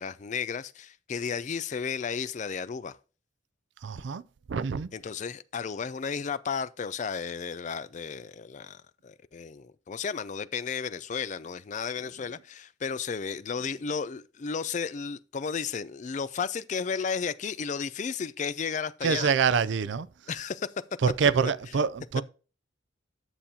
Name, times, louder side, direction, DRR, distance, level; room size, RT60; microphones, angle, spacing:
voice 1, 0.0-3.0 4.9-19.3 20.3-20.7, left 6 dB, 35° left, 0.4 m, -33 dB
voice 2, 3.8-4.2 4.5-4.9 19.0-20.1 21.0-22.2, right 6 dB, 65° right, 0.4 m, -25 dB
10.0 x 7.0 x 2.8 m
head